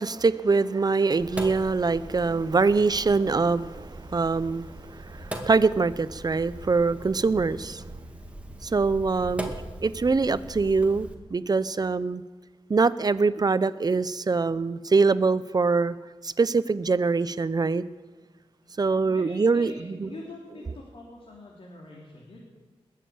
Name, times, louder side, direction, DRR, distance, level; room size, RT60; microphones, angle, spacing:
voice 1, 0.0-7.8 8.6-9.5 9.8-12.2 12.7-15.9 16.2-17.8 18.8-20.1, right 4 dB, 40° right, 15 dB, 0.6 m, -24 dB
Sink (filling or washing), 1.2-11.1, right 1 dB, 10° right, 2.0 m, -40 dB
voice 2, 19.1-22.4, left 2 dB, 70° left, -3 dB, 3.2 m, -45 dB
21.0 x 7.4 x 8.6 m, 1.3 s
wide cardioid pair, 85°, 10 cm